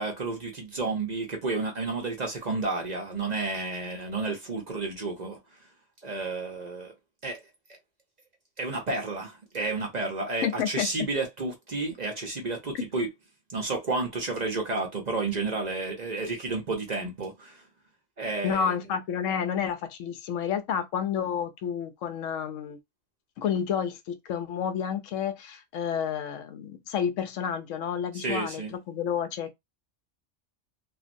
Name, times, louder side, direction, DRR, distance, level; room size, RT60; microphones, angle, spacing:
voice 1, 0.0-5.4 6.0-6.9 7.2-7.4 8.6-13.1 13.5-17.6 18.2-18.8 28.1-28.7, right 3 dB, 45° right, 0.7 m, -31 dB
voice 2, 10.4-11.1 18.4-22.8 23.4-29.5, left 8 dB, 85° left, 1.0 m, -30 dB
3.0 x 2.5 x 2.5 m
omnidirectional pair, 1.3 m